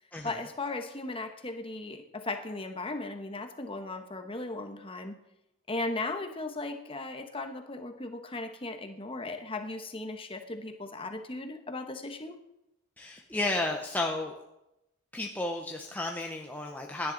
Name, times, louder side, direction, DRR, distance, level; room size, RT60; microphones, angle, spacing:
voice 1, 0.2-5.2 5.7-12.4, left 2 dB, 25° left, 6 dB, 1.1 m, -37 dB
voice 2, 13.0-14.4 15.1-17.1, left 2 dB, 10° left, 1 dB, 0.7 m, -33 dB
16.5 x 10.5 x 3.9 m, 0.89 s
head